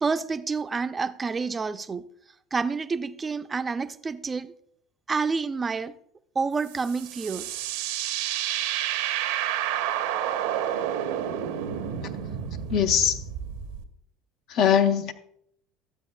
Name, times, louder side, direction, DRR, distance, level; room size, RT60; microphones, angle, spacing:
voice 1, 0.0-2.0 2.5-4.5 5.1-5.9 6.4-7.5, right 4 dB, 25° right, 0.4 m, -28 dB
sound 1, 6.7-13.8, right 10 dB, 80° right, 0.8 m, -30 dB
voice 2, 12.7-13.2 14.5-15.1, left 8 dB, 60° left, 0.8 m, -21 dB
12.5 x 8.0 x 2.2 m
supercardioid pair, 95°, 0 cm